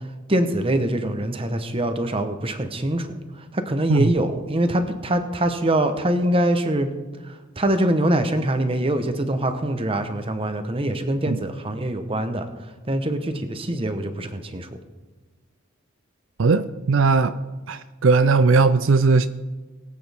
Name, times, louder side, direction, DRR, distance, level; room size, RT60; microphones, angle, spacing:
voice 1, 0.3-3.1 3.5-6.9 7.2-12.5 12.9-14.7, right 1 dB, 25° right, 8 dB, 1.0 m, -23 dB
voice 2, 16.4-17.4 17.7-19.3, right 4 dB, 70° right, 12 dB, 0.5 m, -18 dB
21.5 x 8.7 x 3.5 m, 1.3 s
head